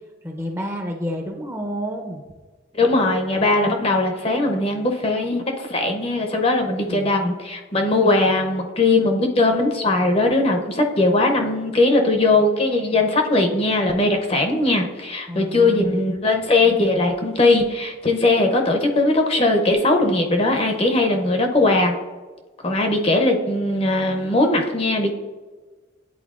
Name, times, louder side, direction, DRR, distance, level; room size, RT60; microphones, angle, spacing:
voice 1, 0.2-2.2 6.7-7.1 15.3-16.0, equal, 15° right, 2 dB, 0.6 m, -30 dB
voice 2, 2.8-21.9 22.6-25.1, left 2 dB, 30° left, 3 dB, 0.6 m, -19 dB
10.0 x 4.2 x 2.4 m, 1.3 s
head